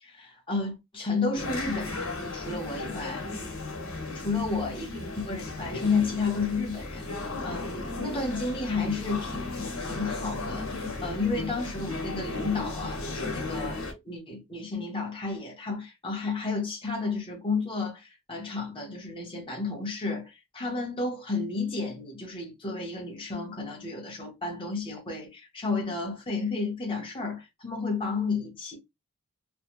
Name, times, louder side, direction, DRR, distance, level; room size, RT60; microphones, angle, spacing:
voice 1, 0.0-3.2 4.1-28.8, left 4 dB, 25° left, 1.2 m, -32 dB
sound 1, 1.3-13.9, left 2 dB, 70° left, 1.4 m, -35 dB
3.2 x 2.3 x 2.9 m
head